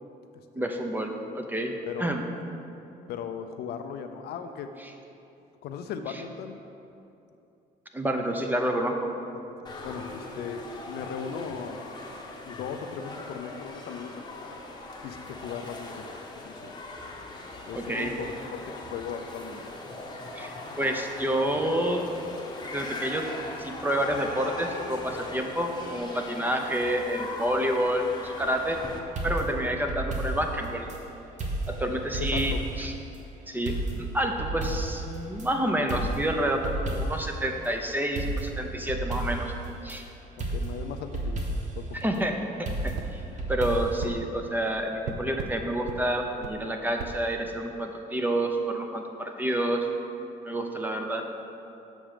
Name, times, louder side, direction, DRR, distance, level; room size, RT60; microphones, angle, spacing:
voice 1, 0.5-2.2 6.1-6.2 7.9-9.1 17.7-18.2 20.3-22.0 22.6-23.3 23.6-28.8 29.2-30.9 31.7-32.9 33.5-39.5 39.8-40.1 42.0-43.2 43.5-49.9 50.4-51.2, right 1 dB, 10° right, 3 dB, 0.7 m, -29 dB
voice 2, 3.1-4.7 5.6-6.6 9.4-12.0 12.4-14.6 15.0-16.1 16.4-16.7 17.7-19.6 32.2-32.6 40.4-41.4 41.7-42.1, left 7 dB, 75° left, 7 dB, 0.5 m, -38 dB
sound 1, 9.6-29.0, left 2 dB, 25° left, 1.0 m, -40 dB
sound 2, 29.2-31.0 31.4-32.9 33.1-33.2 33.7-35.5 35.9-37.4 37.6-37.7 38.2-40.0 40.4-41.9 42.7-44.0, right 2 dB, 45° right, 1.3 m, -32 dB
sound 3, 42.9-43.1 44.0-44.2 45.0-45.6 45.9-46.0 46.4-46.6 47.0-47.2, right 5 dB, 80° right, 0.6 m, -36 dB
7.3 x 6.1 x 5.0 m, 2.8 s
cardioid pair, 110°, 17 cm